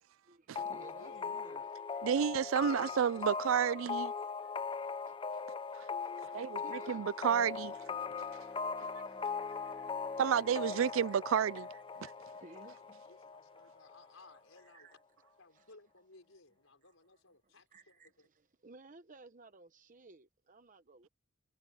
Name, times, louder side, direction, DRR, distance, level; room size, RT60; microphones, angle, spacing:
voice 1, 0.2-1.7 4.1-4.3 5.0-5.7 6.0-6.3 6.6-7.1 8.8-11.0 11.3-13.0 14.6-15.0 15.5-15.7 16.8-16.9 17.7-21.1, right 3 dB, 40° right, 0.9 m, -59 dB
sound 1, 0.6-14.1, left 5 dB, 25° left, 0.5 m, -40 dB
voice 2, 0.8-1.4 2.7-3.3 12.7-14.9 15.4-18.3, left 3 dB, 80° left, 5.0 m, -60 dB
voice 3, 2.0-4.1 6.3-7.7 10.2-11.7 12.0-12.1, right 8 dB, 75° right, 0.4 m, -31 dB
Bowed string instrument, 7.3-12.5, equal, ahead, 1.4 m, -59 dB
head